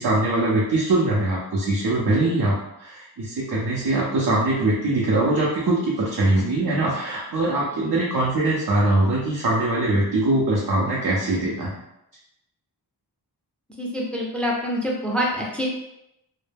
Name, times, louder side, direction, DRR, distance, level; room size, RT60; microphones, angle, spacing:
voice 1, 0.0-11.8, right 2 dB, 60° right, -5 dB, 0.6 m, -22 dB
voice 2, 13.8-15.7, equal, 5° left, -2 dB, 0.5 m, -26 dB
2.1 x 2.1 x 3.3 m, 0.86 s
cardioid pair, 55°, 41 cm